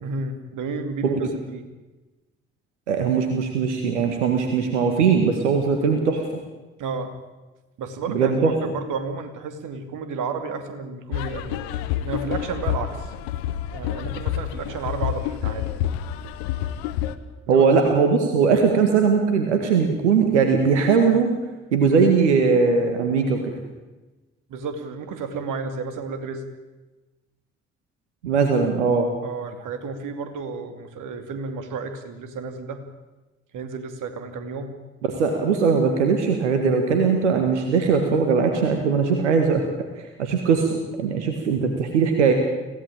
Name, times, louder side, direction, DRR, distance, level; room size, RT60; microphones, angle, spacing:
voice 1, 0.0-1.6 6.8-7.1 7.8-11.6 12.0-13.1 13.7-15.7 17.5-17.6 24.5-26.4 29.2-32.8 33.5-34.8, right 4 dB, 65° right, 8 dB, 2.7 m, -32 dB
voice 2, 2.9-6.2 8.1-8.5 17.5-21.3 21.7-23.4 28.2-29.1 35.1-39.7 40.0-42.3, right 5 dB, 85° right, 5 dB, 1.8 m, -20 dB
sound 1, 11.1-17.2, left 11 dB, 75° left, 1.2 m, -28 dB
25.0 x 16.5 x 8.9 m, 1.2 s
hypercardioid pair, 45°, 34 cm